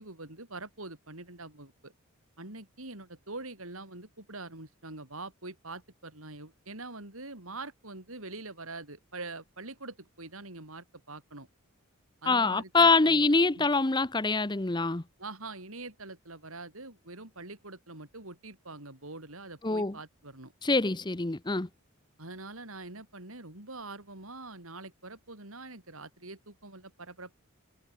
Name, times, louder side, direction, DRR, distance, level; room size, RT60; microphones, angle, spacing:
voice 1, 0.0-1.9 2.4-11.5 12.2-13.3 13.5-13.7 15.2-20.5 22.2-27.4, right 2 dB, 75° right, 6.0 m, -44 dB
voice 2, 12.3-15.0 19.6-19.9 20.6-21.7, left 3 dB, 20° left, 0.8 m, -25 dB
head